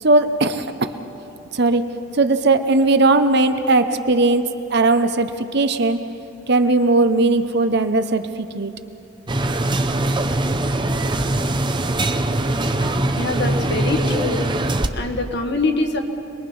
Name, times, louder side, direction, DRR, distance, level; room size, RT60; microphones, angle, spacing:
voice 1, 0.0-0.9 1.5-1.8 2.1-6.0 6.5-8.7 10.1-10.2, right 2 dB, 55° right, 9 dB, 1.0 m, -18 dB
sound 1, 9.3-14.9, right 1 dB, 25° right, 0.7 m, -22 dB
voice 2, 13.2-14.5 14.9-16.0, left 2 dB, 55° left, 4 dB, 1.7 m, -23 dB
26.5 x 21.0 x 5.5 m, 2.8 s
head